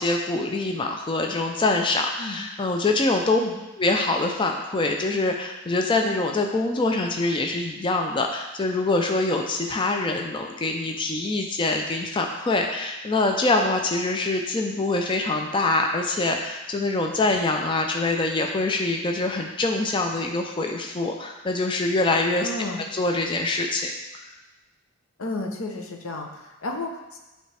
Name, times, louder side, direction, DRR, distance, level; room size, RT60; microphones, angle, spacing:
voice 1, 0.0-3.4 3.8-22.5 22.9-23.9, left 2 dB, 20° left, 3 dB, 0.4 m, -24 dB
voice 2, 22.4-22.8 25.2-27.2, left 2 dB, 75° left, 2 dB, 0.8 m, -32 dB
8.8 x 3.3 x 3.3 m, 1.1 s
head